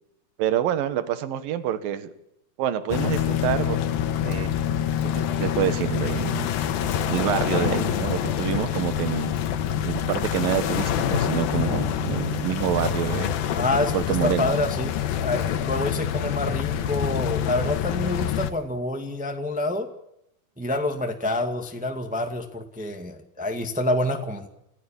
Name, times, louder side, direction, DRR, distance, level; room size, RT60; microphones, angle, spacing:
voice 1, 0.4-2.1 2.6-3.8 4.2-4.6 5.1-6.5 6.8-9.3 9.8-13.3 13.9-14.5, right 11 dB, 70° right, 11 dB, 3.2 m, -27 dB
sound 1, 2.9-18.5, left 10 dB, 75° left, 3.0 m, -26 dB
voice 2, 13.5-19.9 20.6-24.5, left 1 dB, 10° right, 4 dB, 0.4 m, -27 dB
28.0 x 16.0 x 7.2 m, 0.81 s
omnidirectional pair, 4.3 m